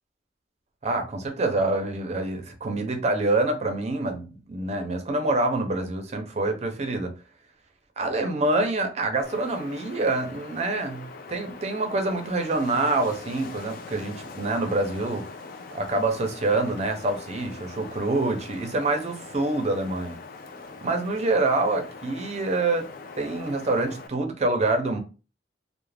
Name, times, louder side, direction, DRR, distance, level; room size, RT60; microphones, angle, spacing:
voice 1, 0.8-7.1 8.0-15.3 15.7-20.2 20.8-22.9 23.2-25.0, right 2 dB, 40° right, 0.5 m, -26 dB
Wind, 9.2-24.1, left 4 dB, 55° left, 0.4 m, -42 dB
2.4 x 2.1 x 3.2 m
head